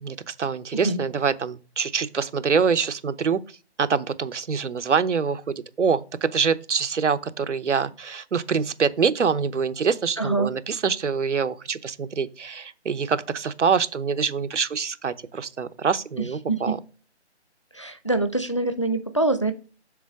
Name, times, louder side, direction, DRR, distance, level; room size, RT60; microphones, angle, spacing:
voice 1, 0.0-3.4 3.8-16.8, right 6 dB, 85° right, 0.9 m, -25 dB
voice 2, 10.2-10.5 16.2-16.7 17.7-19.5, right 2 dB, 25° left, 0.5 m, -25 dB
7.2 x 3.6 x 5.9 m
hypercardioid pair, 175°, 35 cm